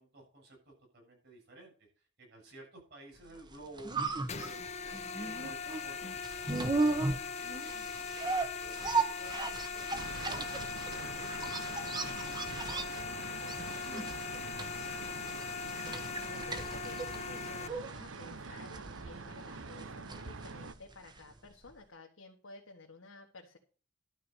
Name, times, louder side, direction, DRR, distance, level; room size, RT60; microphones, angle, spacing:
voice 1, 0.0-3.9 4.3-6.2 7.4-9.9 10.3-14.3, right 2 dB, 60° right, -1 dB, 7.5 m, -54 dB
sound 1, 3.4-21.4 21.7-21.8, right 3 dB, 20° right, 1.0 m, -37 dB
sound 2, 4.3-17.7, left 6 dB, 35° left, 0.8 m, -40 dB
sound 3, 9.9-20.7, right 3 dB, 85° right, 0.9 m, -45 dB
voice 2, 15.3-23.6, left 3 dB, 80° left, 0 dB, 1.6 m, -53 dB
12.0 x 4.7 x 8.1 m, 0.38 s
head